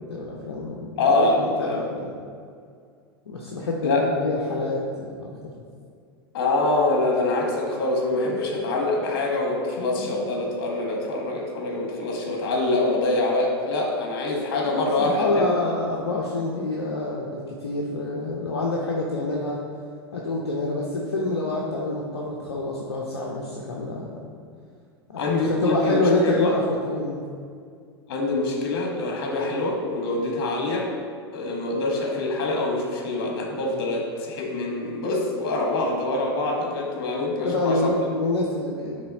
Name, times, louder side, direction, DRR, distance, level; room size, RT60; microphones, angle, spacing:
voice 1, 0.0-2.1 3.3-5.5 8.2-8.6 9.9-10.1 14.6-19.6 20.1-24.3 25.1-27.2 37.4-39.0, left 2 dB, 80° left, -3 dB, 0.8 m, -27 dB
voice 2, 1.0-1.9 3.8-4.0 6.3-15.4 25.2-26.5 28.1-30.9 31.3-37.9, left 2 dB, 60° left, 0 dB, 1.5 m, -25 dB
8.6 x 3.4 x 4.2 m, 2.2 s
figure-of-eight pair, 90°, 13 cm